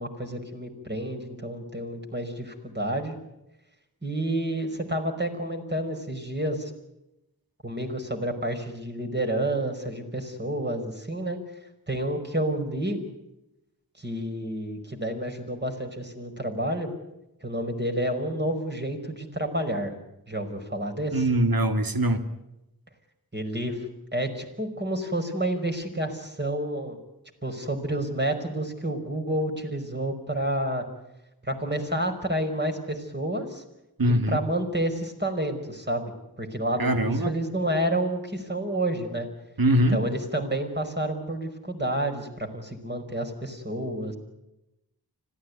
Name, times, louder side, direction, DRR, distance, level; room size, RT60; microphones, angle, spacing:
voice 1, 0.0-3.2 4.0-6.7 7.6-11.4 11.9-13.0 14.0-16.9 17.4-19.9 20.3-21.3 23.3-27.0 27.4-30.8 31.4-33.6 34.0-36.1 36.4-39.3 39.9-44.2, right 1 dB, 25° right, 4 dB, 5.2 m, -29 dB
voice 2, 21.1-22.2 34.0-34.4 36.8-37.3 39.6-40.0, right 1 dB, 60° right, 8 dB, 2.2 m, -22 dB
25.5 x 16.5 x 9.6 m, 0.91 s
wide cardioid pair, 50°, 40 cm